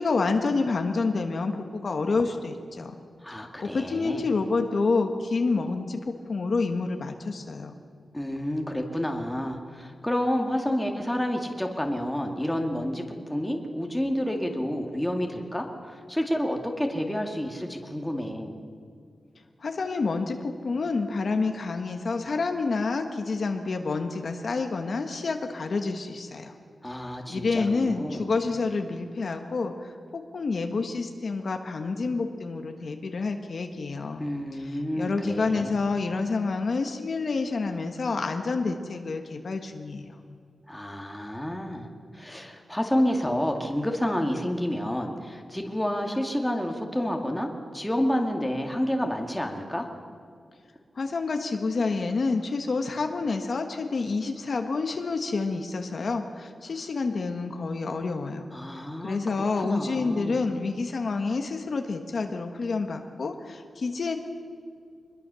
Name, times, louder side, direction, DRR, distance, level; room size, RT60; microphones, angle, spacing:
voice 1, 0.0-3.0 3.3-7.8 19.6-26.5 26.8-34.2 34.7-40.1 50.9-58.5 58.8-64.2, left 4 dB, 50° left, 5 dB, 1.4 m, -28 dB
voice 2, 3.2-4.2 8.1-13.0 13.3-18.6 26.8-28.3 34.2-35.8 40.7-41.9 42.1-49.9 58.5-60.4, equal, 5° left, 2 dB, 2.2 m, -29 dB
24.5 x 21.5 x 7.0 m, 2.3 s
wide cardioid pair, 160°, 0 cm